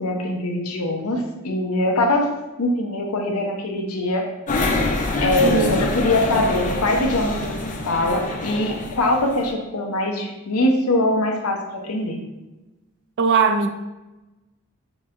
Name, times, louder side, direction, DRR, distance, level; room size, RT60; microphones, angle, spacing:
voice 1, 0.0-2.3 2.6-4.2 5.2-7.6 7.9-12.2, left 1 dB, 85° left, 2 dB, 0.7 m, -22 dB
sound 1, 4.5-9.5, left 2 dB, 35° left, 0.5 m, -25 dB
voice 2, 5.4-5.9 13.2-13.7, right 5 dB, 55° right, 7 dB, 0.3 m, -19 dB
6.2 x 2.8 x 2.5 m, 1.1 s
head